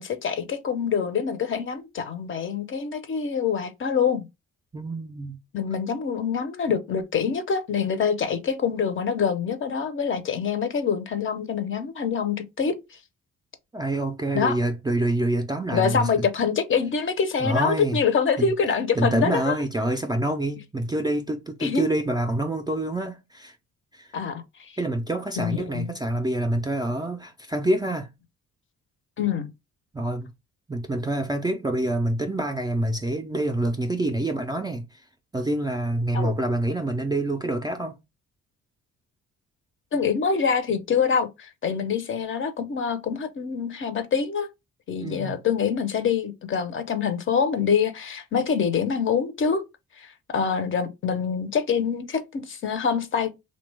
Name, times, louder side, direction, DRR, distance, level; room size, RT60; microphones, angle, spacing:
voice 1, 0.0-4.3 5.5-13.0 14.3-14.6 15.7-19.6 21.6-21.9 24.1-24.7 25.4-25.9 29.2-29.5 36.1-36.3 39.9-44.5 44.9-49.6 50.0-53.3, left 6 dB, 40° left, 0.5 m, -25 dB
voice 2, 4.7-5.4 13.7-16.3 17.4-18.0 18.4-18.5 19.0-23.6 23.9-24.1 24.8-28.1 29.9-30.3 30.7-34.9 35.3-38.0 45.0-45.4, right 1 dB, 15° right, 0.3 m, -26 dB
2.8 x 2.2 x 3.2 m
cardioid pair, 90°, 30 cm